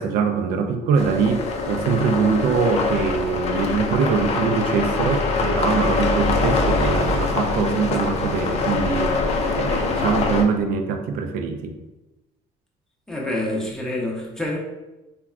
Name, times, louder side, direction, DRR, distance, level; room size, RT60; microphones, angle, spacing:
voice 1, 0.0-9.2 9.5-11.8, right 5 dB, 70° right, 7 dB, 0.4 m, -23 dB
sound 1, 1.0-10.4, left 3 dB, 45° left, 0.4 m, -23 dB
voice 2, 13.1-14.6, left 1 dB, 5° left, -3 dB, 0.7 m, -27 dB
3.4 x 2.2 x 2.3 m, 1.0 s
cardioid pair, 105°, 16 cm